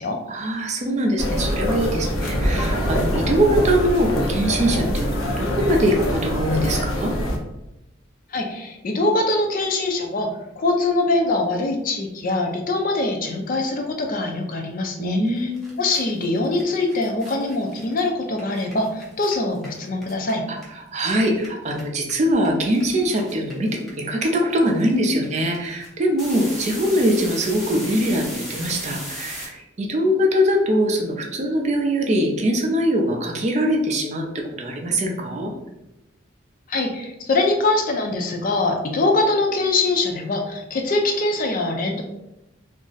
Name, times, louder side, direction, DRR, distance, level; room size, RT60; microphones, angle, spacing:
voice 1, 0.3-7.1 15.0-15.8 20.7-23.7 24.0-35.5, equal, 35° right, 1 dB, 0.4 m, -22 dB
sound 1, 1.2-7.4, equal, 85° left, 0.6 m, -24 dB
voice 2, 8.3-10.3 10.6-15.5 15.8-20.4 36.7-42.0, left 2 dB, 40° left, 3 dB, 0.4 m, -23 dB
sound 2, 15.3-15.4 15.6-21.1 21.3-29.5, equal, ahead, 0.6 m, -37 dB
2.5 x 2.0 x 3.8 m, 0.90 s
head